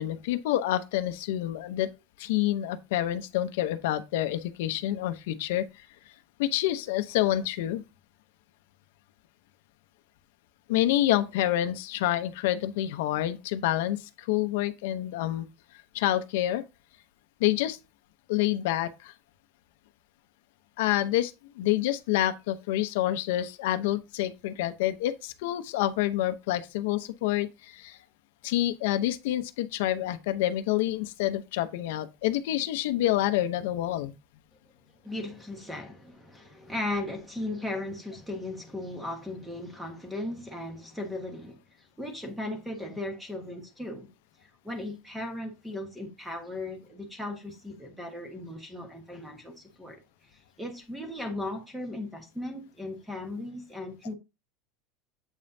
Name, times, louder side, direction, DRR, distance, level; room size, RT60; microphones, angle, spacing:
voice 1, 0.0-1.9 2.2-5.6 6.4-7.8 10.7-15.5 15.9-16.7 17.4-17.8 18.3-19.1 20.8-28.0 28.4-34.1, left 13 dB, 70° left, 0.8 m, -28 dB
voice 2, 35.0-44.1 44.6-50.0 50.3-54.1, left 1 dB, 5° right, 1.4 m, -37 dB
8.3 x 5.2 x 2.7 m
supercardioid pair, 175°, 0 cm